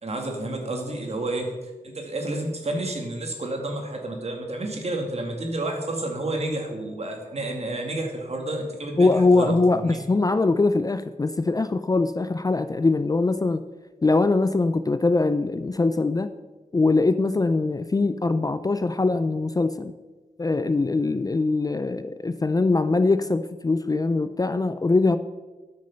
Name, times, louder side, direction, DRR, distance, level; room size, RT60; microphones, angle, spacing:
voice 1, 0.0-1.5 1.8-10.0, right 2 dB, 45° right, 2 dB, 2.1 m, -30 dB
voice 2, 9.0-13.6 14.0-16.3 16.7-19.9 20.4-25.2, left 3 dB, 25° left, 12 dB, 0.4 m, -22 dB
12.5 x 6.4 x 5.7 m, 1.2 s
wide cardioid pair, 130°, 14 cm